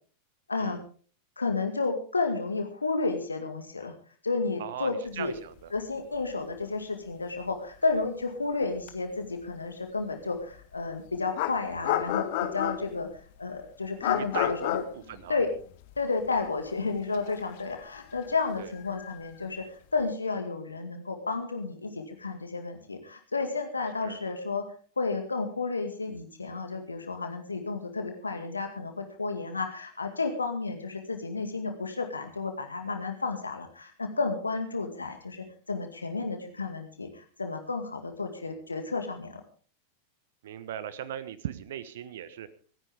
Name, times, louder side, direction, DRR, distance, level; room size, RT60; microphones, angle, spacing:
voice 1, 0.5-0.8 1.4-3.9 4.2-5.3 5.7-13.1 13.4-14.8 15.3-15.5 16.0-19.6 19.9-24.6 25.0-39.4, left 4 dB, 80° left, 5 dB, 2.1 m, -32 dB
voice 2, 4.6-5.7 14.1-14.7 14.9-15.4 18.6-18.7 24.0-24.2 40.4-42.5, right 10 dB, 60° right, 16 dB, 1.2 m, -38 dB
sound 1, 6.2-6.3 6.5-6.7 8.9-9.0 10.7-10.8 11.3-13.1 14.0-16.0 16.3-16.4 17.1-19.5, left 13 dB, 50° left, 1.4 m, -31 dB
26.0 x 10.0 x 3.6 m, 0.42 s
figure-of-eight pair, 90°, 0 cm